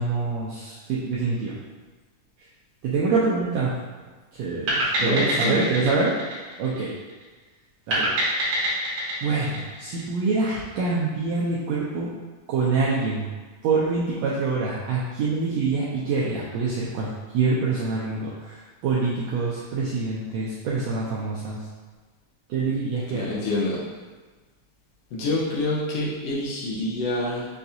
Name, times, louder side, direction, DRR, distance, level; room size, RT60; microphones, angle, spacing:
voice 1, 0.0-1.6 2.4-2.5 2.8-3.7 4.3-6.1 6.6-7.0 7.9-8.1 9.2-12.1 12.5-13.3 13.6-21.7 22.5-23.4, right 4 dB, 85° right, -6 dB, 1.5 m, -25 dB
sound 1, 4.7-7.2 7.9-10.5, right 1 dB, 60° right, 1.9 m, -26 dB
voice 2, 5.0-5.6 23.1-23.8 25.1-27.5, left 2 dB, 80° left, -5 dB, 1.5 m, -27 dB
5.7 x 2.4 x 2.6 m, 1.3 s
omnidirectional pair, 3.6 m